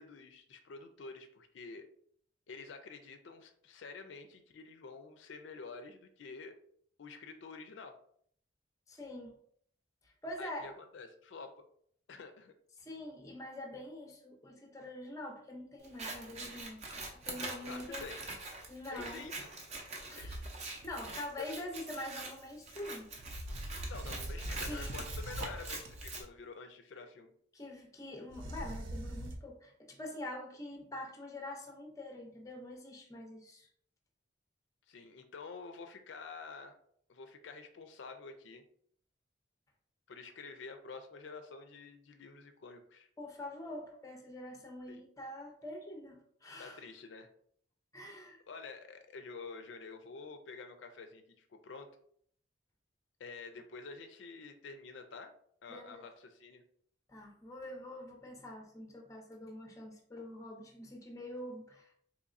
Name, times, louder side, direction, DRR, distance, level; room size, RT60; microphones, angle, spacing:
voice 1, 0.0-1.9 2.5-6.6 7.0-8.0 10.4-11.5 12.1-12.5 17.7-18.2 18.9-19.5 20.1-20.4 21.0-21.4 23.9-27.3 34.9-36.8 37.1-38.6 40.1-43.1 44.9-45.0 46.6-47.3 48.5-51.9 53.2-55.3 55.6-56.6, left 4 dB, 70° left, 7 dB, 0.4 m, -48 dB
voice 2, 8.9-9.3 10.0-10.7 12.8-16.8 17.2-18.1 18.7-19.3 20.1-23.1 24.7-25.0 27.5-33.7 43.2-46.8 47.9-48.4 55.7-56.0 57.1-61.9, left 1 dB, 15° left, 2 dB, 0.5 m, -45 dB
Scissors, 15.8-26.2, right 2 dB, 35° right, 0.6 m, -45 dB
sound 1, 20.2-21.2 23.2-26.3 28.3-29.4, right 1 dB, 85° right, 0.5 m, -42 dB
4.0 x 3.0 x 2.4 m, 0.63 s
head